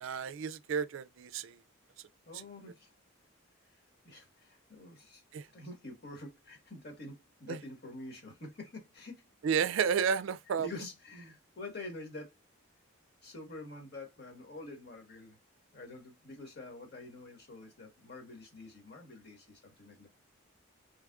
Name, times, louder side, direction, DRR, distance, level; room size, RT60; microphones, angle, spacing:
voice 1, 0.0-1.6 5.3-5.4 7.5-7.6 9.4-10.7, right 7 dB, 65° right, 0.3 m, -31 dB
voice 2, 2.2-2.9 3.7-9.3 10.6-12.3 13.2-15.4 15.7-20.1, left 2 dB, 50° left, 1.4 m, -47 dB
3.5 x 3.2 x 2.3 m
head